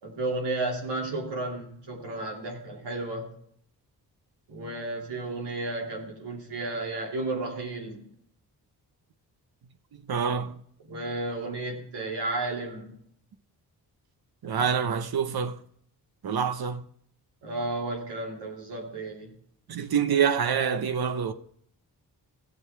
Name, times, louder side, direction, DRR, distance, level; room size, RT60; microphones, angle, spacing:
voice 1, 0.0-3.3 4.5-8.0 10.8-13.0 17.4-19.3, right 2 dB, 85° right, 2.8 m, -33 dB
voice 2, 10.1-10.6 14.4-15.6 16.2-16.8 19.7-21.3, right 7 dB, 65° right, 1.0 m, -26 dB
15.0 x 7.9 x 3.4 m
cardioid pair, 55°, 40 cm